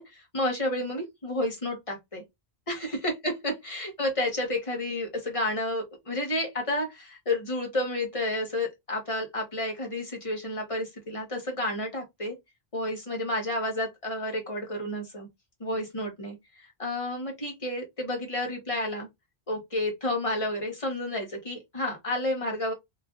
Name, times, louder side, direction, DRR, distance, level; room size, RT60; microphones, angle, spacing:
voice 1, 0.0-2.2 2.7-12.3 12.7-15.3 15.6-19.1 19.5-22.7, left 1 dB, 35° left, 1.0 m, -31 dB
3.1 x 2.4 x 2.4 m
omnidirectional pair, 1.0 m